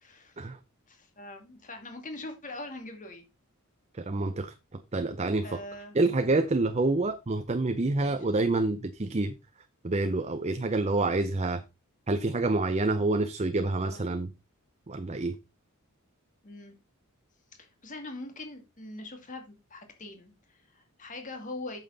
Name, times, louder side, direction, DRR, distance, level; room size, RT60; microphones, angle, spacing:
voice 1, 0.0-0.4 0.9-3.2 5.4-6.0 7.9-8.1 13.6-14.1 16.4-16.7 17.6-21.8, left 2 dB, 35° left, 2.3 m, -42 dB
voice 2, 3.9-5.6 5.9-9.3 9.8-11.6 12.1-14.3 14.9-15.4, right 2 dB, 30° right, 0.6 m, -27 dB
8.7 x 7.5 x 4.0 m
head